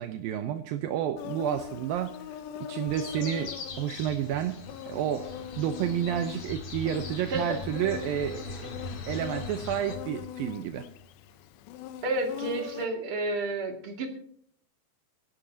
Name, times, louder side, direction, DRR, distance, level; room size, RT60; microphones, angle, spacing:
voice 1, 0.0-5.3 5.6-8.8 9.1-10.9, right 10 dB, 80° right, 8 dB, 2.1 m, -31 dB
Insect, 1.2-12.9, left 10 dB, 85° left, 3.1 m, -42 dB
sound 1, 2.9-11.5, left 4 dB, 60° left, 1.8 m, -44 dB
sound 2, 2.9-10.0, left 4 dB, 45° left, 2.3 m, -44 dB
voice 2, 7.3-7.6 12.0-14.1, right 2 dB, 40° right, 3 dB, 2.5 m, -30 dB
24.0 x 11.5 x 2.8 m, 0.64 s
omnidirectional pair, 4.9 m